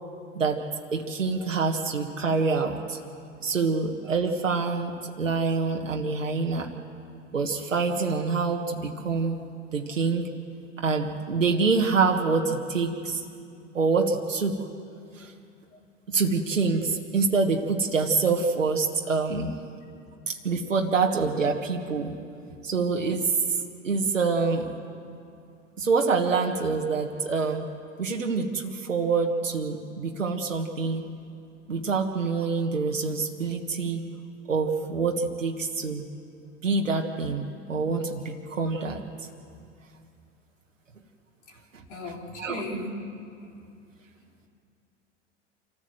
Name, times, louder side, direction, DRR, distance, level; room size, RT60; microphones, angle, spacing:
voice 1, 0.3-3.0 3.4-6.7 7.3-9.4 9.7-10.2 10.8-13.2 13.7-14.7 15.1-15.3 16.1-19.6 20.3-22.1 22.6-23.6 23.8-24.7 25.8-27.7 28.0-31.1 31.7-34.0 34.5-36.1 36.6-39.0 42.0-42.1 42.4-42.6, right 4 dB, 85° right, 2 dB, 1.5 m, -26 dB
voice 2, 41.9-43.0, left 1 dB, 65° left, 0 dB, 3.9 m, -36 dB
27.0 x 14.5 x 7.8 m, 2.4 s
figure-of-eight pair, 85°, 37 cm